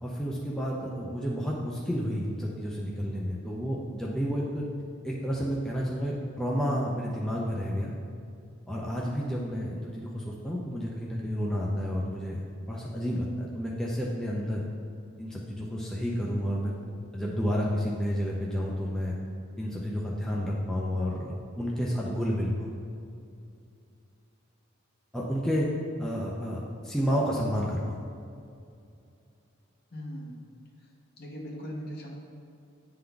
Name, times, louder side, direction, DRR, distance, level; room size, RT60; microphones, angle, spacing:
voice 1, 0.0-4.6 5.0-7.9 8.7-12.4 12.7-14.6 15.2-16.7 17.1-19.2 19.6-22.7 25.1-25.7 26.0-28.0, equal, 5° left, -5 dB, 0.5 m, -30 dB
voice 2, 29.9-30.4 31.2-32.1, equal, 50° left, -1 dB, 1.0 m, -39 dB
8.9 x 3.8 x 3.4 m, 2.5 s
head